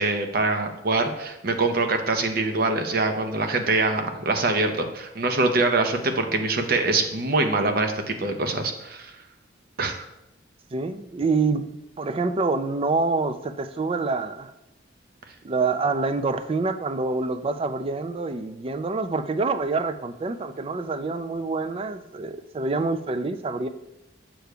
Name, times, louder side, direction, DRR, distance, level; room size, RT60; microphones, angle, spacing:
voice 1, 0.0-9.1 9.8-10.1, right 3 dB, 50° right, 6 dB, 0.7 m, -24 dB
voice 2, 10.7-11.7 12.0-14.5 15.4-23.7, right 3 dB, 30° right, 10 dB, 0.4 m, -26 dB
7.6 x 6.6 x 2.3 m, 0.88 s
head